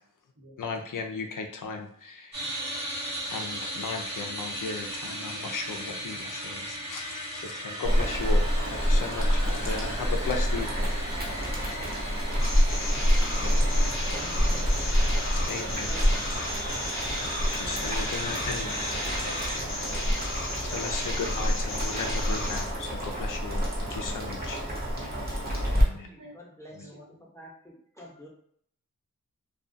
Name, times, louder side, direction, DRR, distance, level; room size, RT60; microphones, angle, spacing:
voice 1, 0.6-2.5 3.3-10.9 12.9-13.1 15.4-15.9 16.3-16.4 17.2-18.8 20.6-24.6 25.7-26.1 26.8-26.9, left 4 dB, 75° left, 4 dB, 0.5 m, -36 dB
sound 1, 2.3-19.6, equal, 60° right, 1.0 m, -37 dB
Boiling, 7.8-25.8, equal, 30° right, 0.7 m, -28 dB
sound 2, 12.4-22.7, left 2 dB, 40° left, 0.7 m, -35 dB
voice 2, 13.4-15.4 18.2-20.0 24.9-25.7 26.2-26.4 26.8-27.0, equal, 80° right, -5 dB, 1.1 m, -48 dB
voice 3, 14.0-15.0 15.6-16.6 25.3-27.0 27.3-28.3, equal, 10° left, -3 dB, 0.7 m, -48 dB
2.3 x 2.3 x 2.5 m, 0.65 s
wide cardioid pair, 65°, 32 cm